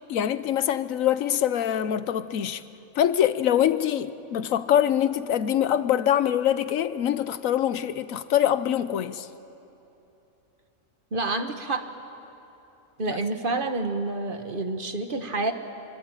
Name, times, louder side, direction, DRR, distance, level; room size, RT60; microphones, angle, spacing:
voice 1, 0.1-2.6 3.0-9.3 13.1-13.2, left 10 dB, 85° left, 1.2 m, -24 dB
voice 2, 11.1-11.9 13.0-15.5, right 3 dB, 40° right, 1.4 m, -28 dB
25.5 x 24.0 x 8.9 m
omnidirectional pair, 1.4 m